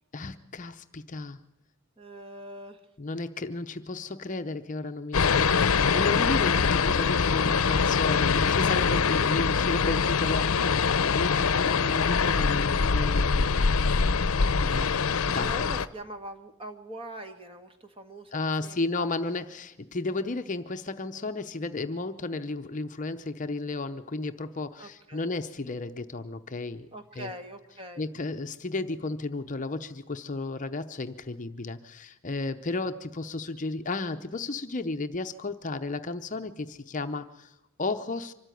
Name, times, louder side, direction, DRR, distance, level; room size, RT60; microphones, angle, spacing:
voice 1, 0.1-1.4 3.0-13.5 14.5-15.0 15.2-15.7 18.3-26.9 27.1-27.3 28.0-38.3, left 3 dB, 35° left, 8 dB, 0.7 m, -33 dB
voice 2, 2.0-2.8 15.3-19.1 24.8-25.2 26.9-28.0, right 1 dB, 25° right, 6 dB, 1.6 m, -43 dB
sound 1, 5.1-15.9, left 5 dB, 75° left, 0.7 m, -24 dB
25.0 x 13.0 x 9.2 m, 0.92 s
head